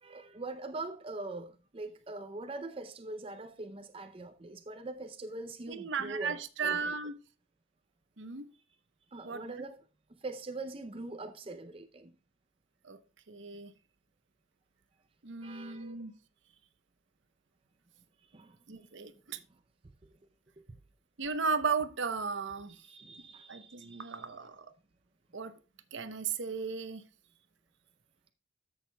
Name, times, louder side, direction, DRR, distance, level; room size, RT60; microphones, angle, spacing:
voice 1, 0.0-7.0 9.1-9.8 10.1-12.1 15.4-16.0 18.3-18.6 20.6-20.7 22.7-24.3, right 2 dB, 30° right, 0.5 m, -43 dB
voice 2, 5.7-7.1 8.2-8.4 9.2-9.6 12.8-13.0 13.3-13.7 15.2-16.1 18.7-19.4 21.2-22.8 23.5-24.7 25.3-25.5 25.9-27.0, right 5 dB, 65° right, 0.8 m, -35 dB
13.5 x 6.5 x 2.2 m
head